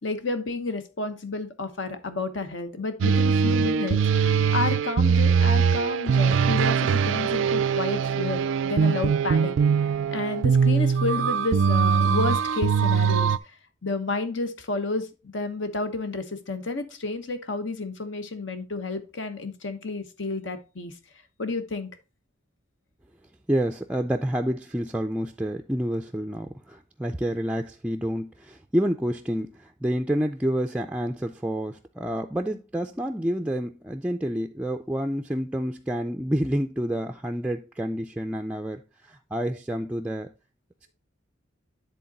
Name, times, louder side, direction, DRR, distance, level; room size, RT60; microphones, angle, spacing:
voice 1, 0.0-9.5 10.1-13.3 13.8-15.1 15.3-20.9 21.4-21.9, left 3 dB, 75° left, 1.0 m, -31 dB
sound 1, 3.0-13.4, right 6 dB, 80° right, 0.4 m, -22 dB
voice 2, 23.5-38.8 39.1-40.3, equal, 5° right, 0.3 m, -28 dB
10.0 x 3.8 x 4.0 m
head